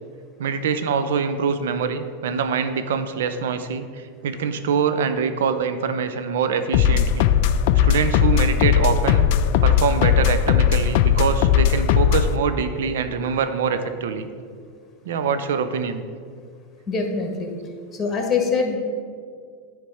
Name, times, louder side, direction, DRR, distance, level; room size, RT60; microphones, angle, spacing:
voice 1, 0.4-7.3 7.8-9.3 9.6-14.3 15.0-16.0, right 6 dB, 80° right, 9 dB, 0.6 m, -24 dB
sound 1, 6.7-12.4, left 9 dB, 65° left, 0.3 m, -18 dB
voice 2, 16.9-17.5 17.9-18.8, left 4 dB, 25° left, 3 dB, 1.5 m, -23 dB
9.6 x 3.3 x 5.6 m, 2.1 s
hypercardioid pair, 110°, 0 cm